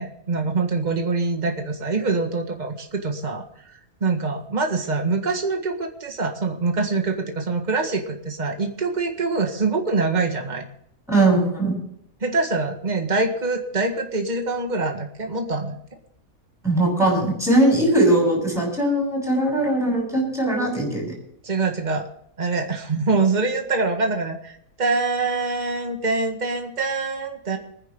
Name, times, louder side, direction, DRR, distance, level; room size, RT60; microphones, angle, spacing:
voice 1, 0.0-3.4 4.0-10.6 12.2-15.8 21.4-22.1 22.4-27.6, right 3 dB, 30° right, 4 dB, 1.8 m, -24 dB
voice 2, 11.1-11.8 16.6-21.1, right 1 dB, ahead, -2 dB, 7.2 m, -20 dB
24.0 x 10.0 x 3.8 m, 0.72 s
omnidirectional pair, 1.6 m